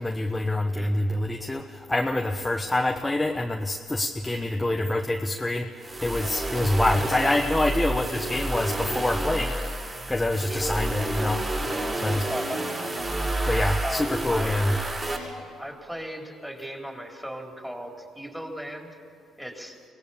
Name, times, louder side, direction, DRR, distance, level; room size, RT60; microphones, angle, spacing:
voice 1, 0.0-9.6 10.1-11.4 11.9-12.3 13.5-14.7, left 1 dB, 15° left, 4 dB, 1.1 m, -26 dB
voice 2, 0.7-1.1 8.1-8.6 10.5-10.8 12.3-12.6 13.8-14.6 15.6-18.9 19.4-19.8, equal, 5° right, 1 dB, 3.9 m, -37 dB
sound 1, 5.8-15.2, right 1 dB, 30° right, 7.0 m, -30 dB
24.0 x 18.0 x 7.1 m, 2.4 s
hypercardioid pair, 55°, 0 cm